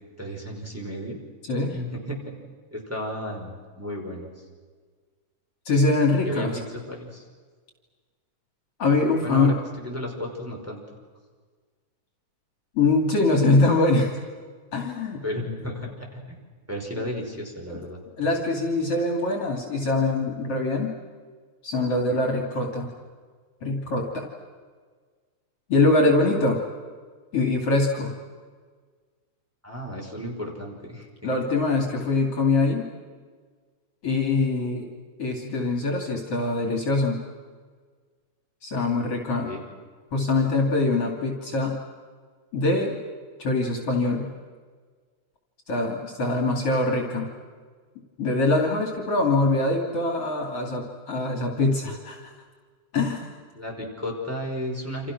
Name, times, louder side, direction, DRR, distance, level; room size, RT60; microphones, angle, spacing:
voice 1, 0.2-1.2 1.7-2.2 2.7-4.3 6.2-6.5 6.7-7.2 9.2-10.8 13.2-13.4 15.2-16.4 16.7-18.0 29.6-31.4 39.4-39.7 53.5-55.1, left 1 dB, 5° right, -1 dB, 5.4 m, -33 dB
voice 2, 5.7-6.5 8.8-9.6 12.8-14.1 14.7-15.2 17.7-17.8 18.2-20.9 21.6-22.9 23.6-24.3 25.7-26.6 27.3-28.1 31.2-32.9 34.0-34.9 35.2-37.2 38.6-39.5 40.1-41.8 42.5-43.0 43.4-44.3 45.7-47.3 48.2-52.3 52.9-53.3, left 2 dB, 50° left, 2 dB, 3.8 m, -23 dB
29.0 x 28.0 x 6.3 m, 1.5 s
omnidirectional pair, 3.5 m